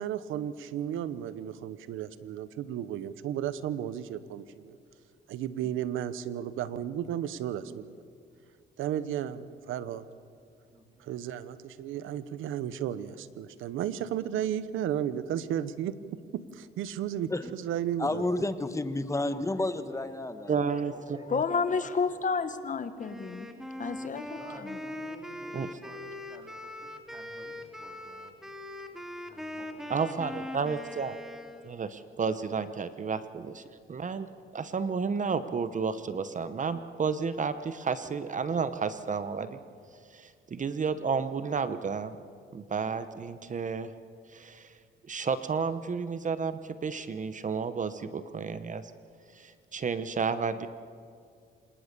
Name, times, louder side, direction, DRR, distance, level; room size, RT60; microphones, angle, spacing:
voice 1, 0.0-4.8 5.3-7.9 8.8-10.0 11.0-16.0 16.3-18.2, right 10 dB, 85° right, 15 dB, 1.0 m, -34 dB
voice 2, 10.7-11.1 19.7-20.1 20.9-22.1 23.8-28.5 28.9-31.2 33.6-33.8, right 1 dB, 20° right, 2 dB, 3.6 m, -53 dB
voice 3, 18.0-20.5, left 2 dB, 15° left, 11 dB, 1.4 m, -30 dB
voice 4, 20.5-20.9 21.3-21.4 25.5-25.7 29.9-31.2 31.6-33.6 33.9-39.6 40.1-42.2 42.5-43.9 44.3-44.7 45.1-48.9 49.3-50.7, right 5 dB, 40° right, 12 dB, 1.0 m, -31 dB
voice 5, 21.3-23.5 23.8-24.4 24.7-24.8, left 5 dB, 40° left, 10 dB, 1.6 m, -30 dB
Wind instrument woodwind instrument, 23.0-31.8, left 1 dB, ahead, 2.2 m, -41 dB
26.5 x 20.0 x 6.8 m, 2.2 s
cardioid pair, 90°, 20 cm